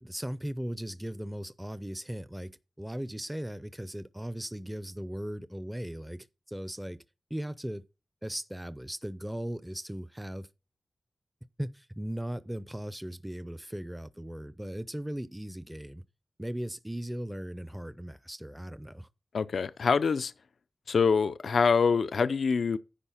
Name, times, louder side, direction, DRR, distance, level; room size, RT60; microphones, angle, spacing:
voice 1, 0.0-7.0 7.3-7.8 8.2-10.5 11.6-16.0 16.4-19.1, right 1 dB, 5° right, 0.5 m, -38 dB
voice 2, 19.3-20.3 20.9-22.8, left 5 dB, 80° left, 0.4 m, -25 dB
10.0 x 4.1 x 5.6 m
wide cardioid pair, 95°, 0 cm